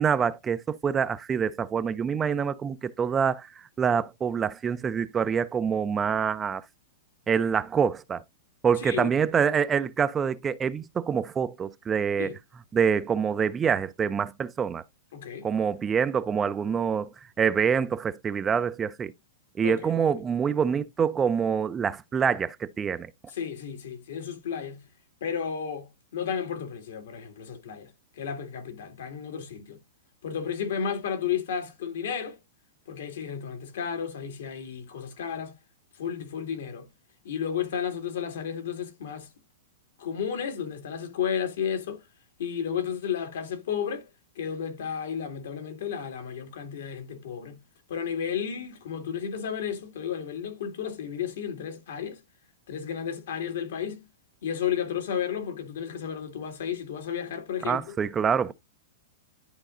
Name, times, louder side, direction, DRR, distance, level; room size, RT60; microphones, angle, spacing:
voice 1, 0.0-3.5 3.8-6.6 7.3-8.2 8.6-12.3 12.7-14.8 15.4-17.1 17.4-19.1 19.6-23.1 57.6-58.5, right 7 dB, 15° right, 0.4 m, -26 dB
voice 2, 8.8-9.1 12.2-12.4 15.1-15.5 19.6-20.0 23.3-24.9 25.2-27.9 28.2-29.8 30.2-32.4 32.9-35.6 36.0-36.9 37.2-39.3 40.0-42.0 42.4-44.1 44.4-47.6 47.9-52.2 52.7-54.1 54.4-57.8, left 8 dB, 75° left, 2.0 m, -33 dB
11.5 x 4.0 x 2.4 m
hypercardioid pair, 145°, 0 cm